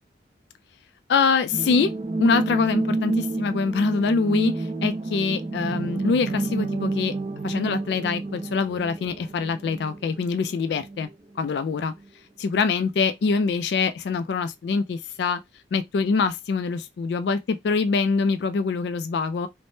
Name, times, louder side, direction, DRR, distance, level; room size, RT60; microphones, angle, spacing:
voice 1, 1.1-1.9 2.2-7.1 7.4-11.1 11.4-11.9 12.4-15.4 15.7-19.5, left 4 dB, 65° left, 0.3 m, -24 dB
sound 1, 1.5-11.1 11.4-11.5, right 2 dB, 30° right, 0.4 m, -29 dB
3.4 x 2.1 x 2.6 m
head